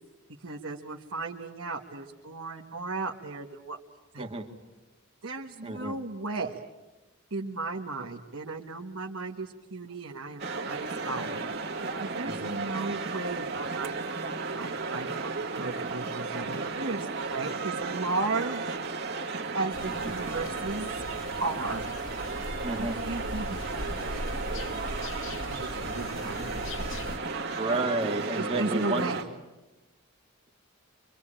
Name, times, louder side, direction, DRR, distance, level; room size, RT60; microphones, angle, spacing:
voice 1, 0.4-3.8 4.1-4.3 5.2-6.6 7.3-11.4 12.0-18.8 19.5-20.9 21.4-21.8 22.8-24.4 25.3-26.7 28.3-29.2, right 3 dB, 65° right, 0 dB, 1.6 m, -35 dB
voice 2, 5.6-5.9 12.2-12.5 20.0-20.1 22.6-23.0 27.6-29.1, right 2 dB, 25° right, 1 dB, 2.0 m, -31 dB
sound 1, 10.4-29.2, right 4 dB, 45° right, 2.2 m, -34 dB
sound 2, 19.7-27.2, left 1 dB, 55° left, 1.7 m, -39 dB
25.5 x 24.0 x 8.9 m, 1.1 s
head